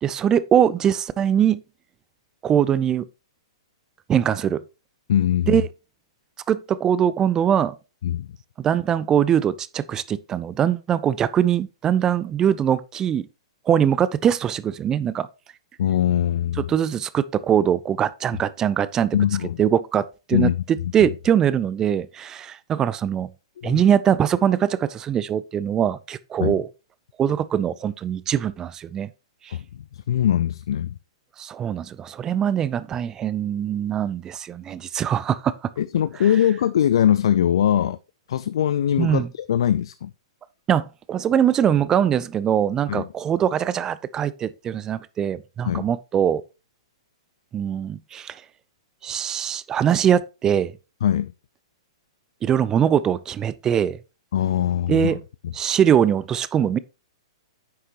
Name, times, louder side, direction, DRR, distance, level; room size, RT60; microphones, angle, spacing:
voice 1, 0.0-1.6 2.4-3.0 4.1-4.6 5.5-5.7 6.5-7.8 8.6-13.3 13.7-15.3 16.6-19.2 19.6-20.5 20.9-23.3 23.6-26.7 27.2-29.1 29.4-29.5 31.4-35.6 39.0-39.3 40.7-46.4 47.5-48.4 49.0-50.7 52.4-54.0 54.9-55.2 55.5-56.8, right 9 dB, 20° right, 0.5 m, -22 dB
voice 2, 5.1-5.6 8.0-8.3 15.8-16.7 19.1-19.6 20.3-20.6 23.6-23.8 26.4-26.6 29.5-29.6 29.9-31.0 35.8-38.0 38.3-40.1 42.9-43.0 45.6-45.9 51.0-51.3 54.3-55.2, left 10 dB, 60° left, 0.4 m, -21 dB
9.5 x 6.5 x 3.0 m
figure-of-eight pair, 115°, 3 cm